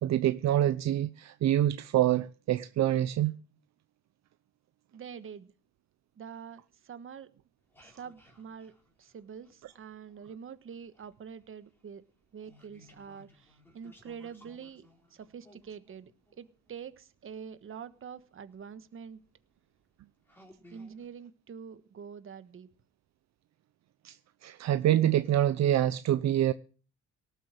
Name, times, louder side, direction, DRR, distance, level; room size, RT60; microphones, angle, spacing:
voice 1, 0.0-3.3 24.0-24.2 24.4-26.5, right 12 dB, 65° right, 0.7 m, -26 dB
voice 2, 4.9-5.5 6.2-7.3 7.8-8.7 9.0-12.0 12.3-16.1 16.4-19.2 20.7-22.7, right 7 dB, 45° right, 1.3 m, -45 dB
sound 1, 7.6-10.4 10.7-17.5 18.4-18.5 19.1-19.3 19.8-19.9 20.3-21.1, left 1 dB, 5° left, 4.2 m, -60 dB
18.0 x 7.9 x 6.3 m
cardioid pair, 125°, 29 cm